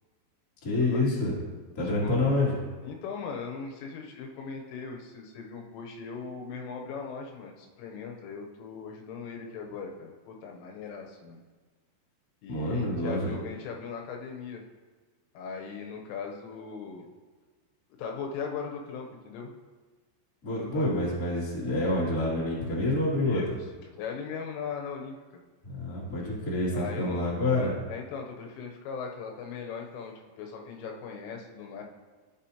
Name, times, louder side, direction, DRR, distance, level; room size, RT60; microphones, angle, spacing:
voice 1, 0.6-1.3 1.7-2.5 12.5-13.4 20.4-23.4 25.6-27.8, left 2 dB, 30° left, -6 dB, 1.6 m, -27 dB
voice 2, 2.8-11.4 12.4-14.6 15.3-17.1 18.0-19.5 20.4-20.9 23.2-23.5 24.0-25.4 26.7-27.3 27.9-31.8, left 5 dB, 80° left, 1 dB, 3.3 m, -39 dB
14.5 x 7.1 x 2.8 m, 1.4 s
omnidirectional pair, 5.9 m